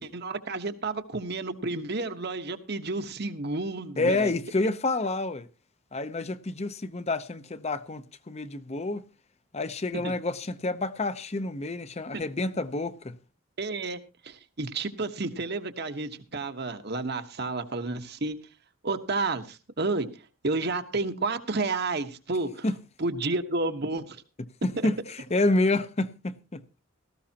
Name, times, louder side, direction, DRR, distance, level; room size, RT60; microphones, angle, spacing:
voice 1, 0.0-4.3 10.0-10.1 13.6-18.4 18.8-20.1 20.4-22.6 23.0-24.2 24.8-24.9, right 3 dB, 55° right, 1.2 m, -31 dB
voice 2, 4.0-5.5 5.9-9.0 9.5-13.2 22.6-22.8 24.6-26.6, left 2 dB, 30° left, 0.7 m, -28 dB
17.5 x 14.5 x 2.9 m
head